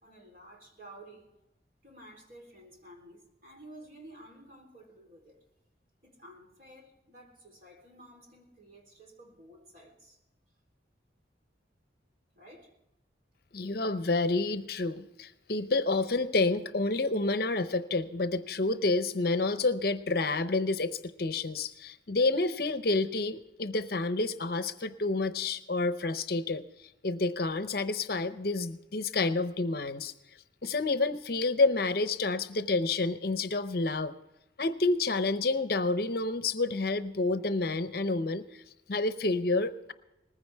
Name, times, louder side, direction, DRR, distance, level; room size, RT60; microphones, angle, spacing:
voice 1, 0.0-1.3 1.8-5.4 6.0-10.2 12.3-12.7, right 1 dB, 50° right, 2 dB, 3.8 m, -52 dB
voice 2, 13.5-26.6 27.0-30.1 30.6-34.1 34.6-38.6 38.9-39.9, left 3 dB, 55° left, 12 dB, 0.7 m, -29 dB
20.0 x 15.0 x 3.5 m, 0.93 s
head